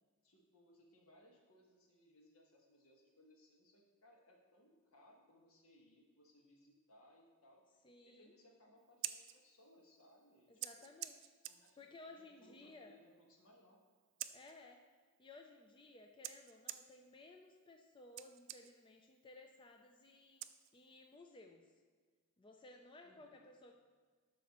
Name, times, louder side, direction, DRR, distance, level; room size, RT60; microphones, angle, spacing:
voice 1, 0.2-7.6 8.1-10.5 10.8-10.9 11.5-13.8 23.0-23.4, left 1 dB, 75° left, 0 dB, 1.4 m, -67 dB
voice 2, 7.8-8.4 10.5-11.3 11.8-13.0 14.3-14.8 15.2-20.4 20.7-21.7 22.4-23.7, left 2 dB, 20° left, 3 dB, 0.4 m, -58 dB
Scissors, 8.8-21.2, right 13 dB, 60° right, 0.3 m, -52 dB
12.0 x 6.0 x 3.0 m, 1.5 s
head